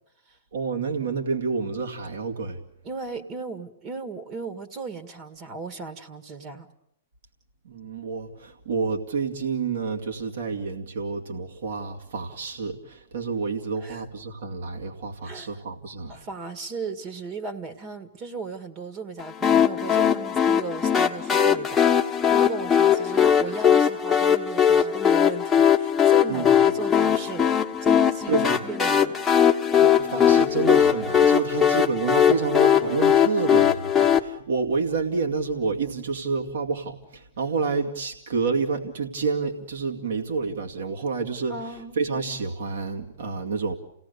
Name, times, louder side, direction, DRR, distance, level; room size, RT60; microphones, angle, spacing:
voice 1, 0.5-2.6 7.6-16.3 26.3-26.7 28.3-28.6 29.7-43.7, right 4 dB, 70° right, 2 dB, 2.4 m, -29 dB
voice 2, 2.8-6.7 13.8-14.0 15.2-15.6 16.1-27.5 27.8-28.3 28.6-29.1 41.5-42.0, right 4 dB, 35° right, 10 dB, 1.8 m, -36 dB
sound 1, 19.4-34.2, left 8 dB, 15° left, 1.3 m, -20 dB
29.0 x 17.5 x 6.8 m, 0.80 s
hypercardioid pair, 115°, 0 cm